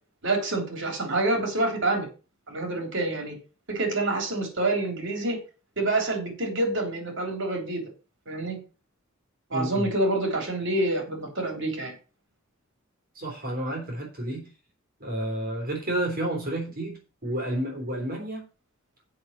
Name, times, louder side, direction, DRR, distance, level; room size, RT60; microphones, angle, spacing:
voice 1, 0.2-2.1 2.5-3.4 3.7-5.4 5.8-7.8 8.3-8.6 9.5-11.9, right 2 dB, 65° right, 3 dB, 3.3 m, -27 dB
voice 2, 9.5-9.9 13.1-14.5 15.0-18.4, right 1 dB, 45° right, 1 dB, 3.4 m, -30 dB
7.7 x 6.0 x 7.3 m, 0.34 s
head